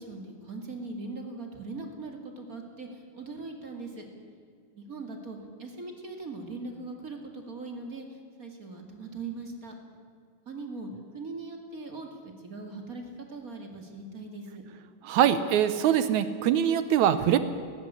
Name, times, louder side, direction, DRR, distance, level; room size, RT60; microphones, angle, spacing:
voice 1, 0.0-4.1 4.7-9.8 10.5-12.1 12.4-13.0 13.3-14.6, right 3 dB, 30° right, 3 dB, 2.0 m, -40 dB
voice 2, 15.0-17.4, right 10 dB, 70° right, 12 dB, 1.9 m, -23 dB
18.5 x 15.0 x 9.9 m, 2.2 s
omnidirectional pair, 3.9 m